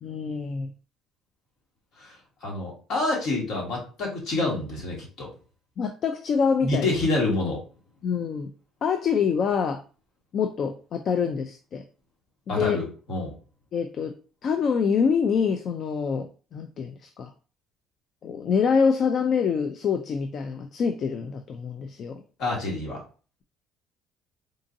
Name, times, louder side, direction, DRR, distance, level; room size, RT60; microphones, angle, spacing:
voice 1, 0.0-0.7 5.8-6.9 8.0-8.5 8.8-9.8 10.3-11.8 12.5-12.8 13.7-14.1 14.4-16.3 16.5-17.3 18.2-22.2, left 6 dB, 45° left, 7 dB, 0.3 m, -25 dB
voice 2, 2.0-5.3 6.6-7.6 12.5-13.3 22.4-23.0, left 2 dB, 65° left, -2 dB, 1.6 m, -27 dB
3.7 x 2.5 x 2.6 m, 0.37 s
cardioid pair, 135°, 0 cm